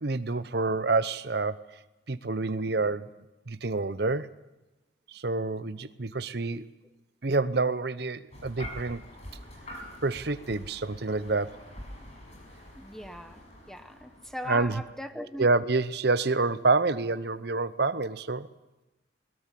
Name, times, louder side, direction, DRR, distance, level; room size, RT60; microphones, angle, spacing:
voice 1, 0.0-1.6 2.1-3.1 3.5-4.3 5.1-6.6 7.2-9.0 9.7-11.5 14.5-14.8 15.4-18.5, right 3 dB, 55° right, 0.8 m, -28 dB
sound 1, 8.3-14.9, left 1 dB, 35° left, 6.2 m, -46 dB
voice 2, 12.8-15.5 16.4-16.5, equal, ahead, 0.9 m, -40 dB
21.5 x 20.5 x 7.6 m
head